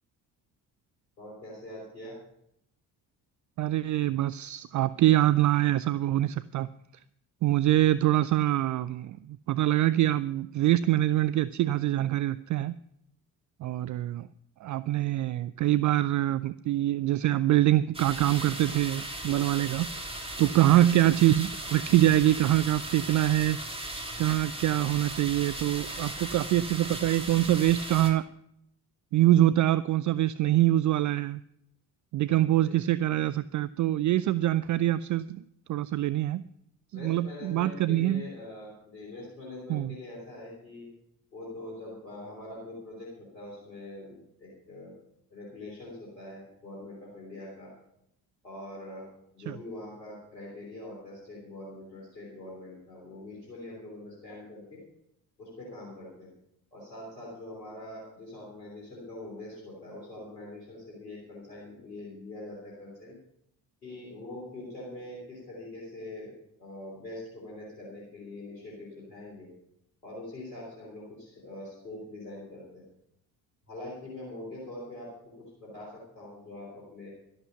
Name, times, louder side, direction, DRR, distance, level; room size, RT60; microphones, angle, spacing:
voice 1, 1.2-2.2 32.6-32.8 36.9-40.9 41.3-44.9 45.3-47.7 48.4-49.1 49.3-54.8 55.4-56.3 56.7-63.1 63.8-66.3 66.6-69.5 70.0-72.8 73.7-75.1 75.4-77.1, left 2 dB, 85° left, -5 dB, 3.5 m, -43 dB
voice 2, 3.6-6.7 7.4-12.8 13.6-14.3 14.6-23.9 24.2-28.3 29.1-31.4 32.1-35.4 35.7-36.4 36.9-38.3 39.7-39.9 49.5-49.6, right 14 dB, 40° right, 17 dB, 0.5 m, -25 dB
sound 1, 17.9-28.1, right 1 dB, 10° right, 2.9 m, -37 dB
12.5 x 11.5 x 5.6 m, 0.76 s
figure-of-eight pair, 45°, 49 cm